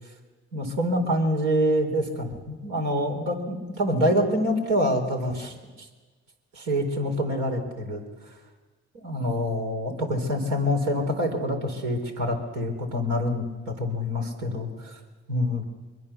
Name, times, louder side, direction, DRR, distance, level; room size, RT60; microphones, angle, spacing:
voice 1, 0.5-5.9 6.5-8.0 9.0-15.0 15.3-15.6, equal, 85° right, 3 dB, 4.1 m, -26 dB
23.0 x 22.5 x 6.9 m, 1.4 s
hypercardioid pair, 50°, 29 cm